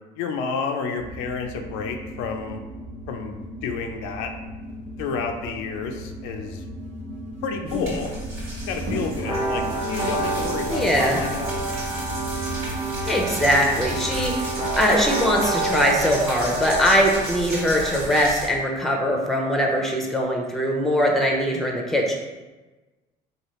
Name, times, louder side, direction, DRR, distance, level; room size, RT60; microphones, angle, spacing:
voice 1, 0.2-2.6 3.1-4.3 5.0-6.6 7.4-8.1 8.7-11.6, left 5 dB, 80° left, 4 dB, 0.4 m, -30 dB
sound 1, 1.0-14.3, right 1 dB, 60° right, 1.0 m, -36 dB
sound 2, 7.7-18.5, right 1 dB, 75° right, 1.5 m, -33 dB
sound 3, 9.2-18.8, right 2 dB, 25° right, 0.9 m, -30 dB
voice 2, 10.7-11.2 13.1-22.2, equal, ahead, 0 dB, 0.6 m, -21 dB
3.1 x 2.3 x 3.0 m, 1.2 s
supercardioid pair, 75°, 21 cm